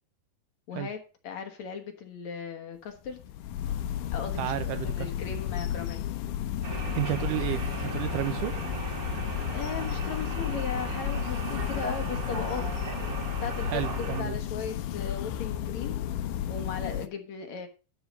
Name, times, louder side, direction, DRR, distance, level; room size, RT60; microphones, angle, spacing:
voice 1, 0.7-3.2 4.1-6.1 9.5-12.7 13.4-16.2 16.5-17.7, left 6 dB, 60° left, 2.3 m, -37 dB
sound 1, 3.0-17.1, left 10 dB, 80° left, 2.2 m, -33 dB
voice 2, 4.4-5.1 6.7-8.5 13.7-14.4, right 15 dB, 80° right, 2.1 m, -32 dB
sound 2, 6.6-14.2, right 2 dB, 30° right, 2.3 m, -36 dB
12.5 x 4.8 x 6.5 m
omnidirectional pair, 3.9 m